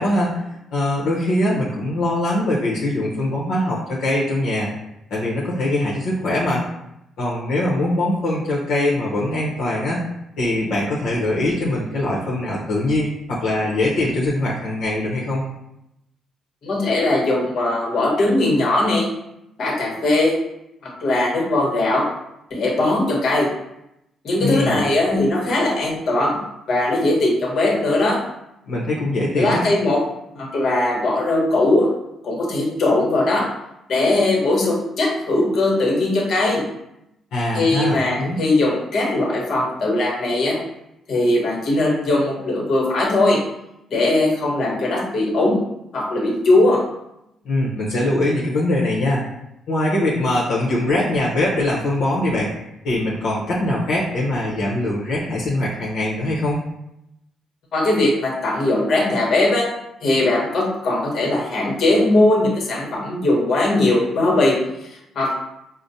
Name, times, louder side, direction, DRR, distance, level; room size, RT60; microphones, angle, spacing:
voice 1, 0.0-4.7 5.1-6.7 7.2-10.1 10.4-15.4 24.4-24.9 28.7-29.6 37.3-38.4 47.4-49.2 49.7-52.5 52.8-56.6, left 1 dB, 75° left, -6 dB, 0.8 m, -22 dB
voice 2, 16.6-19.1 19.6-20.3 21.0-22.1 22.5-23.5 24.2-26.4 26.7-28.2 29.4-30.0 30.3-31.9 32.2-33.4 33.9-36.6 37.5-40.6 41.1-43.4 43.9-45.6 45.9-46.8 57.7-59.7 60.0-65.3, left 2 dB, 60° left, -2 dB, 1.1 m, -19 dB
4.9 x 2.1 x 2.7 m, 0.84 s
cardioid pair, 90°, 0 cm